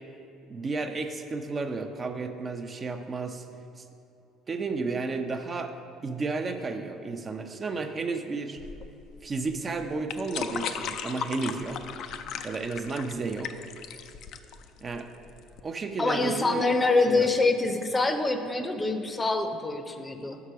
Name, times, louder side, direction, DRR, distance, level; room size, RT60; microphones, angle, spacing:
voice 1, 0.5-3.5 3.8-3.9 4.5-5.7 6.0-8.6 9.2-11.8 12.4-13.5 14.8-15.1 15.6-16.6 17.1-17.3, right 3 dB, 35° right, 5 dB, 0.5 m, -32 dB
sound 1, 8.6-15.6, left 7 dB, 65° left, 0.3 m, -37 dB
voice 2, 16.0-20.4, left 3 dB, 25° left, 7 dB, 0.6 m, -25 dB
5.8 x 4.8 x 5.6 m, 2.8 s
hypercardioid pair, 70°, 0 cm